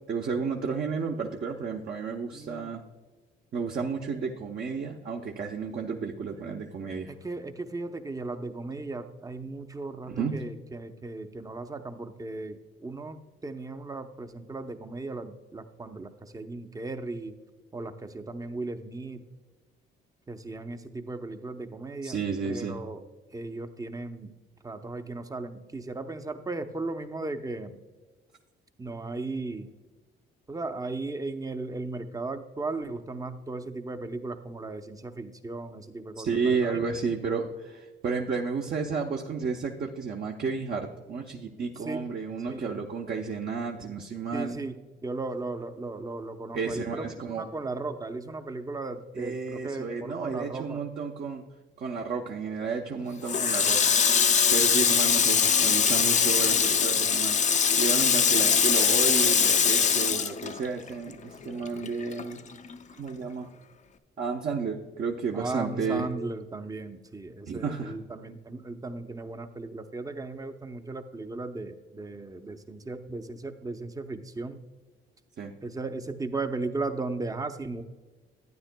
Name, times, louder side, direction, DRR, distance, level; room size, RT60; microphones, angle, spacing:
voice 1, 0.1-2.8 3.5-7.1 10.1-10.4 22.0-22.8 36.2-44.6 46.5-47.4 49.1-51.4 51.8-54.0 54.2-57.4 57.8-62.4 63.0-63.5 64.2-66.1 67.5-67.9 75.4-75.5, right 5 dB, 50° right, 1 dB, 0.8 m, -32 dB
voice 2, 2.3-2.7 7.1-17.4 17.7-19.2 20.3-22.2 22.4-23.0 23.3-24.3 24.6-27.8 28.8-29.7 30.5-36.9 41.8-42.0 42.5-42.6 44.3-50.8 65.3-74.6 75.6-77.8, right 3 dB, 20° right, 8 dB, 0.7 m, -36 dB
Water tap faucet, 53.3-61.1 61.4-62.7, left 7 dB, 35° left, 0.5 m, -22 dB
12.0 x 9.4 x 2.2 m, 1.3 s
cardioid pair, 90°, 20 cm